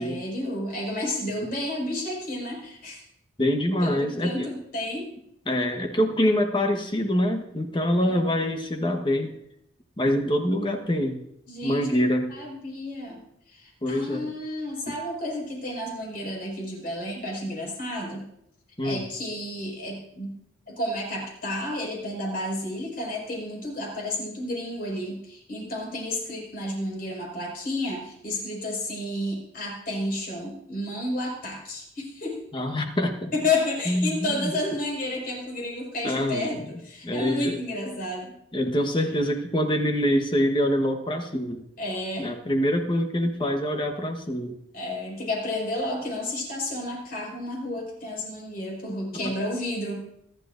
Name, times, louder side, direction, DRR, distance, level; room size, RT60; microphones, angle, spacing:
voice 1, 0.0-3.0 3.8-5.1 8.1-8.2 11.5-11.9 12.3-13.2 13.5-18.2 18.8-20.4 20.7-32.4 33.3-38.3 41.8-42.3 44.7-50.0, left 1 dB, 50° left, -2 dB, 5.3 m, -31 dB
voice 2, 3.4-4.5 5.5-9.3 10.0-11.2 11.6-12.3 13.8-14.3 14.9-15.0 18.8-19.0 32.5-33.3 33.9-34.5 36.0-36.6 37.0-37.6 38.5-41.6 42.2-44.6 49.1-49.3, equal, 25° left, 4 dB, 1.2 m, -25 dB
22.0 x 11.5 x 2.6 m, 0.77 s
head